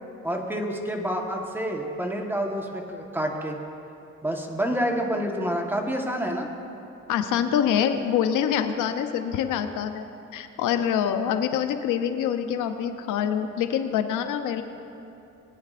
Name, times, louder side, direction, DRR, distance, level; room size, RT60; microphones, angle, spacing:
voice 1, 0.2-3.6 4.2-6.5, equal, 5° right, 1 dB, 1.2 m, -28 dB
voice 2, 7.1-14.6, left 8 dB, 85° left, 8 dB, 0.7 m, -25 dB
20.0 x 9.5 x 2.5 m, 2.8 s
cardioid pair, 90°, 30 cm